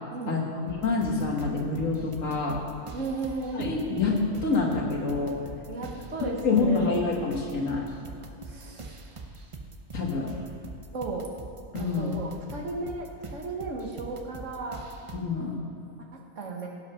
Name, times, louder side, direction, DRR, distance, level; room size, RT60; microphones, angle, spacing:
voice 1, 0.3-2.6 3.5-5.4 6.2-7.9 9.9-10.3 11.7-12.1 15.1-15.6, left 4 dB, 70° left, -1 dB, 2.1 m, -27 dB
sound 1, 0.7-15.2, right 3 dB, 30° right, 0.6 m, -43 dB
voice 2, 2.9-3.8 5.7-6.9 8.5-9.0 10.9-11.3 11.8-14.8 16.4-16.7, right 3 dB, 65° right, 0 dB, 1.7 m, -35 dB
16.5 x 6.0 x 5.7 m, 2.7 s
omnidirectional pair, 1.4 m